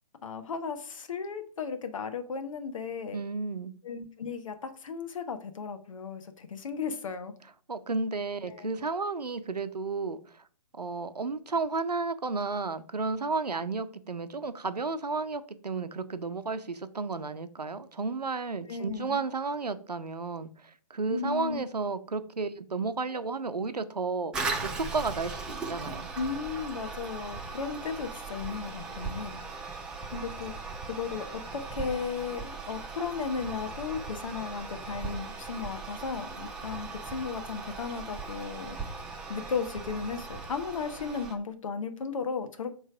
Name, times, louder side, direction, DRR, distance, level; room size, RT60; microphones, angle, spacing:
voice 1, 0.2-3.2 3.8-7.3 8.5-8.7 18.7-19.2 21.1-21.6 26.1-29.4 30.1-38.9 39.3-42.7, left 5 dB, 55° left, 1.0 m, -35 dB
voice 2, 3.1-3.7 7.7-10.4 10.8-24.3 24.6-26.1, right 4 dB, 85° right, 0.7 m, -32 dB
Toilet flush, 24.3-41.4, right 4 dB, 5° right, 0.3 m, -38 dB
7.4 x 3.2 x 4.7 m
figure-of-eight pair, 135°, 20 cm